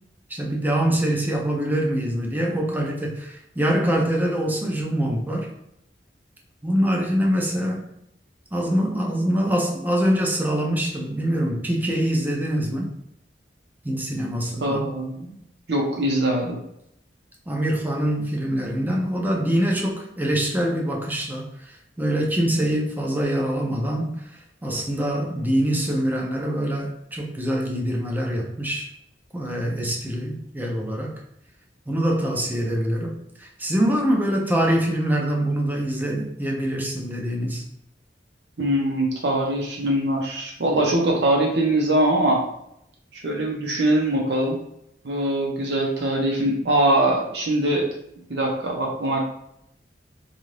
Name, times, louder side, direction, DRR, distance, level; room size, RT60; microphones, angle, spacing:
voice 1, 0.3-5.5 6.6-7.9 8.5-12.9 13.8-14.8 17.5-24.2 24.6-28.9 29.3-31.1 31.9-37.6, right 1 dB, 10° right, -1 dB, 0.5 m, -24 dB
voice 2, 14.6-15.3 15.7-16.6 38.6-42.4 43.1-44.6 45.0-47.9 48.3-49.2, right 1 dB, 70° right, 0 dB, 0.8 m, -22 dB
2.7 x 2.4 x 3.2 m, 0.77 s
head